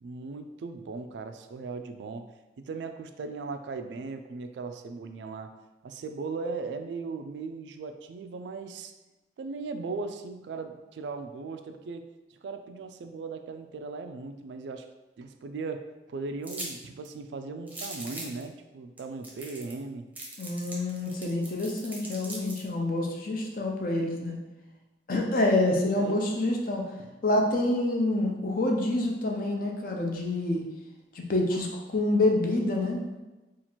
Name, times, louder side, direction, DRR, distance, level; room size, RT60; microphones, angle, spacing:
voice 1, 0.0-2.3 2.6-5.5 5.8-8.9 9.4-14.9 15.2-20.1 26.0-26.2 27.0-27.1, right 4 dB, 80° right, 7 dB, 0.3 m, -38 dB
sound 1, 16.4-16.7 17.0-17.1 17.7-18.4 19.0-19.1 19.2-19.8 20.2-22.6, right 2 dB, 10° right, 0.6 m, -40 dB
voice 2, 20.4-24.4 25.1-26.9 27.2-30.6 31.1-33.0, left 2 dB, 50° left, 1 dB, 0.6 m, -27 dB
2.9 x 2.4 x 4.2 m, 1.1 s
head